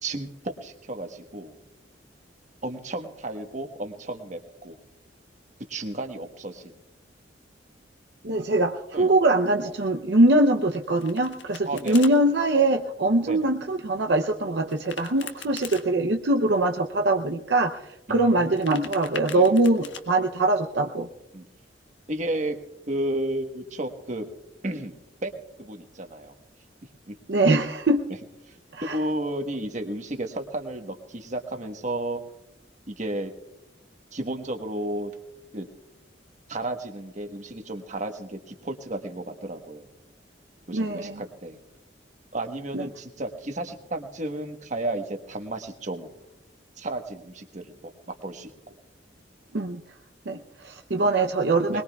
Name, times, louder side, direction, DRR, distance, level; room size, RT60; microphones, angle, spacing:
voice 1, 0.0-1.5 2.6-4.8 5.7-6.8 8.9-9.1 11.7-12.1 13.3-13.5 18.1-18.9 19.3-19.5 21.3-21.5 22.1-22.6 22.9-24.3 24.6-24.9 25.2-25.3 25.6-26.3 27.1-27.2 28.5-32.2 32.9-33.3 34.1-35.1 35.5-35.7 36.5-39.9 40.7-41.6 42.3-46.1 46.8-48.5 51.7-51.8, right 1 dB, 40° right, 5 dB, 1.3 m, -33 dB
voice 2, 8.2-21.1 27.3-28.0 28.7-29.0 40.7-41.2 42.7-42.9 49.5-49.8 50.3-51.8, right 2 dB, 65° right, 3 dB, 0.7 m, -22 dB
Domestic sounds home sounds, 10.7-12.1 14.7-15.8 18.4-20.0, left 6 dB, 85° left, 1.4 m, -40 dB
21.5 x 21.0 x 2.4 m, 0.94 s
head